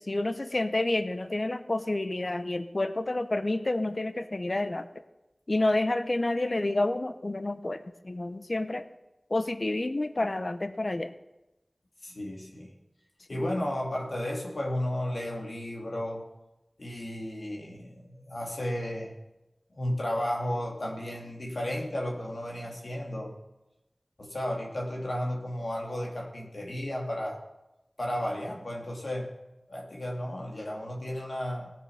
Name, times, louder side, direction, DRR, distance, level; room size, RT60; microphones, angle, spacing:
voice 1, 0.0-4.9 5.5-8.8 9.3-11.1 13.3-13.6, left 2 dB, 50° left, 11 dB, 0.7 m, -29 dB
voice 2, 12.0-12.7 13.3-16.2 16.8-19.1 19.7-23.3 24.2-27.4 28.0-29.3 29.7-31.7, left 1 dB, 80° left, -1 dB, 2.4 m, -33 dB
18.0 x 7.0 x 5.7 m, 0.97 s
wide cardioid pair, 60°, 0 cm